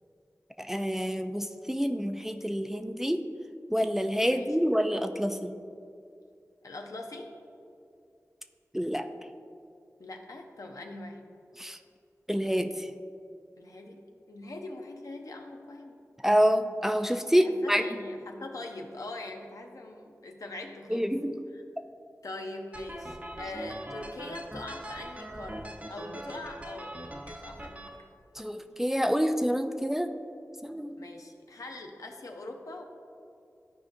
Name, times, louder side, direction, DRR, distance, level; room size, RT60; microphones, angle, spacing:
voice 1, 0.7-3.2 3.7-5.5 8.7-9.0 11.6-11.8 12.3-12.9 16.2-17.8 20.9-21.3 28.4-30.1 30.6-31.0, equal, 5° right, 7 dB, 0.4 m, -27 dB
voice 2, 6.6-7.3 10.0-11.2 13.6-14.0 14.3-16.0 17.3-21.1 21.5-21.6 22.2-28.0 31.0-32.8, left 2 dB, 75° left, 3 dB, 0.7 m, -42 dB
sound 1, 22.7-27.9, right 1 dB, 25° right, 0.9 m, -41 dB
12.5 x 4.8 x 2.6 m, 2.5 s
cardioid pair, 45°, 6 cm